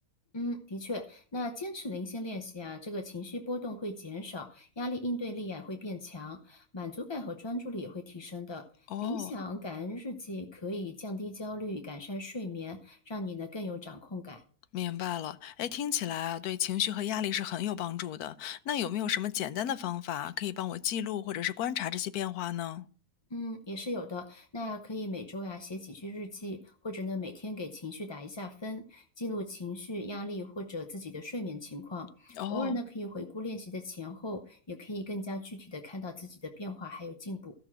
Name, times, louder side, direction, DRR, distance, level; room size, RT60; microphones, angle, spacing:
voice 1, 0.3-14.4 23.3-37.5, left 1 dB, 30° left, 0.5 m, -38 dB
voice 2, 8.9-9.3 14.7-22.8 32.3-32.8, left 11 dB, 85° left, 1.2 m, -33 dB
13.5 x 6.1 x 6.1 m
omnidirectional pair, 1.6 m